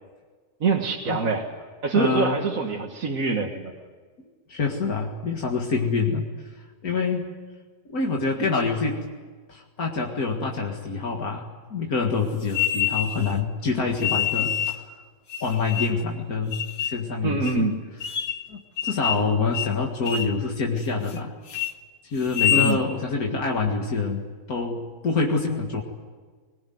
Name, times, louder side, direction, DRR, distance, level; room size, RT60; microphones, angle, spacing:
voice 1, 0.6-1.5 1.8-3.7 17.2-17.8 22.5-22.8, right 4 dB, 65° right, 1 dB, 1.9 m, -24 dB
voice 2, 1.9-2.4 4.5-6.3 6.8-7.3 7.9-9.0 9.5-11.5 11.7-14.8 15.4-17.7 18.5-21.3 22.1-25.8, left 4 dB, 80° left, 1 dB, 2.4 m, -26 dB
sound 1, 12.5-13.3 14.0-14.8 15.3-16.1 16.5-17.0 17.5-17.6 18.0-18.5 18.8-19.3 19.5-19.8 20.1-20.4 20.8-21.2 21.5-21.7 22.2-22.8, left 10 dB, 65° left, 1.4 m, -26 dB
21.0 x 20.5 x 9.4 m, 1.5 s
omnidirectional pair, 1.5 m